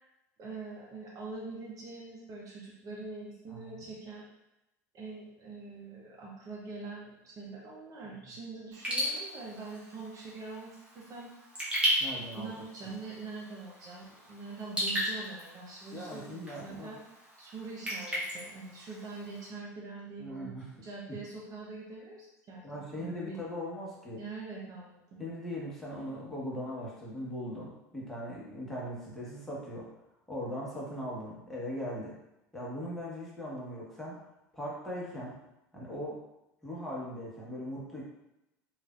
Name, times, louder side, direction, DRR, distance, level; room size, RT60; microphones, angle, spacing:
voice 1, 0.4-4.3 4.9-11.5 12.3-20.6 20.8-22.7 22.9-23.4 24.2-25.2, right 3 dB, 40° right, -3 dB, 0.7 m, -44 dB
voice 2, 3.5-3.8 12.0-12.9 15.9-16.9 20.2-20.7 22.6-24.2 25.2-29.9 30.3-32.1 32.5-34.2 34.5-35.4 35.7-36.2 36.6-38.0, equal, 5° left, -6 dB, 1.1 m, -39 dB
Raindrop / Drip, 8.7-19.5, equal, 10° right, 1.3 m, -36 dB
3.4 x 2.5 x 2.3 m, 0.90 s
hypercardioid pair, 80°, 9 cm